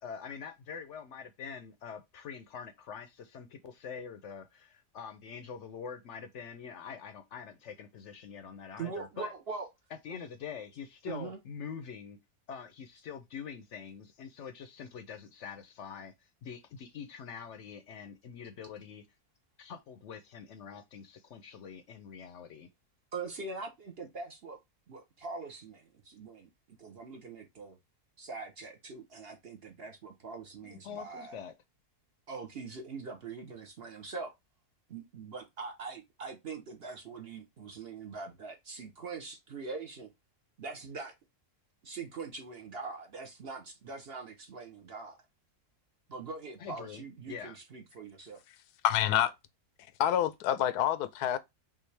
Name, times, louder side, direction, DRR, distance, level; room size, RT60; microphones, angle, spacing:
voice 1, 0.0-9.3 10.0-12.2 12.5-16.1 16.4-19.0 19.6-22.7 30.7-31.5 46.6-47.6, left 7 dB, 65° left, 0.8 m, -45 dB
voice 2, 8.8-9.7 11.1-11.4 23.1-24.6 24.9-26.5 26.8-27.8 28.2-31.4 32.3-34.3 34.9-40.1 40.6-41.1 41.8-45.2 46.1-48.4, right 4 dB, 50° right, 0.8 m, -42 dB
voice 3, 48.8-49.3 50.0-51.4, left 11 dB, 90° left, 1.1 m, -27 dB
5.5 x 2.6 x 3.2 m
omnidirectional pair, 1.6 m